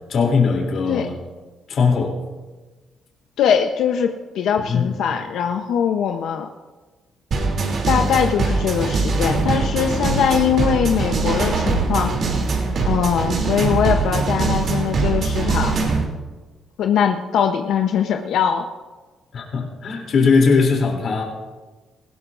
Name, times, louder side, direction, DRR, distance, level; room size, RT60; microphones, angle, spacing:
voice 1, 0.1-1.1 1.7-2.2 4.6-5.0 19.3-21.2, left 5 dB, 60° left, 0 dB, 3.0 m, -19 dB
voice 2, 3.4-6.5 7.9-12.2 12.8-15.8 16.8-18.7, left 8 dB, 80° left, 4 dB, 0.8 m, -21 dB
sound 1, 7.3-16.0, right 3 dB, 60° right, 3.0 m, -22 dB
19.0 x 16.5 x 2.6 m, 1.3 s
cardioid pair, 90°, 0 cm